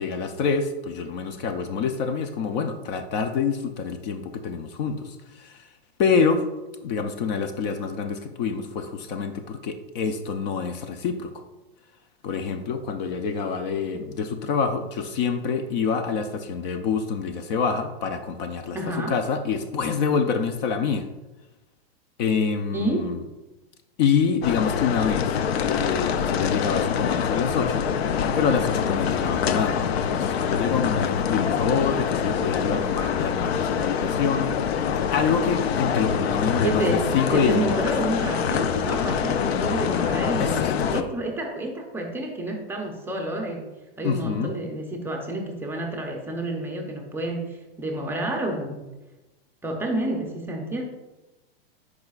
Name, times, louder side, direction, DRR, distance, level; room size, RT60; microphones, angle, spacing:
voice 1, 0.0-5.6 6.0-6.4 6.8-11.4 12.2-18.8 19.1-21.1 22.2-23.2 24.0-25.4 25.6-27.8 28.4-34.8 35.1-37.8 40.4-41.1 44.0-44.6, left 6 dB, 45° left, 8 dB, 0.6 m, -26 dB
voice 2, 18.7-19.2 22.7-23.1 36.6-43.6 44.0-48.9 49.6-50.8, right 1 dB, 5° right, 1 dB, 0.6 m, -29 dB
sound 1, 24.4-41.0, left 7 dB, 85° left, 0.6 m, -25 dB
10.5 x 4.9 x 2.4 m, 1.1 s
supercardioid pair, 140°, 31 cm